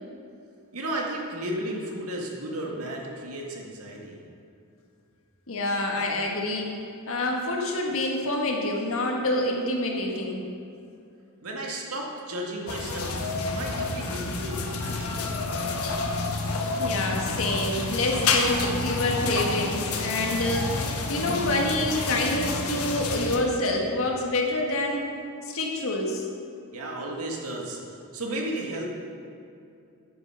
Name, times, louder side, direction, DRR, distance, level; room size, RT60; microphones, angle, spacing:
voice 1, 0.7-4.2 11.4-15.5 26.7-28.8, right 1 dB, 85° right, -1 dB, 1.8 m, -34 dB
voice 2, 5.5-6.8 7.1-10.4 16.8-25.0 25.4-26.2, left 1 dB, 65° left, 0 dB, 1.7 m, -27 dB
sound 1, 12.7-23.4, left 3 dB, 90° left, 1.2 m, -29 dB
9.8 x 9.4 x 5.6 m, 2.6 s
head